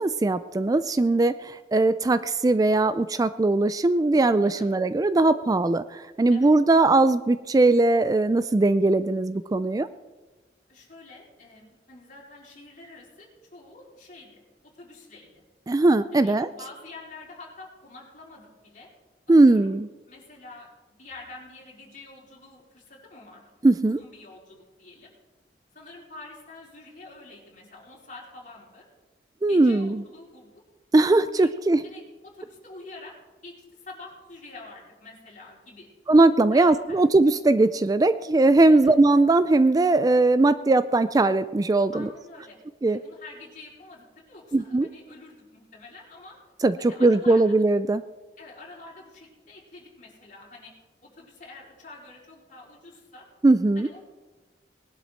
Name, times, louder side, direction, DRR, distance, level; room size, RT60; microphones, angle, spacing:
voice 1, 0.0-9.9 15.7-16.5 19.3-19.9 23.6-24.0 29.4-30.0 30.9-31.8 36.1-42.1 42.8-43.0 44.5-44.9 46.6-48.0 53.4-53.9, right 2 dB, 20° right, 14 dB, 0.3 m, -20 dB
voice 2, 10.7-14.4 14.7-15.4 16.1-18.9 19.4-19.7 20.1-23.4 23.8-25.1 25.7-28.9 29.5-30.5 31.3-31.5 31.8-33.1 33.4-35.9 36.5-37.0 38.7-38.9 41.9-42.6 42.9-46.4 46.8-47.6 48.4-50.7 51.0-53.3 53.7-54.0, left 2 dB, 45° left, -3 dB, 4.6 m, -46 dB
19.5 x 11.5 x 4.5 m, 1.2 s
head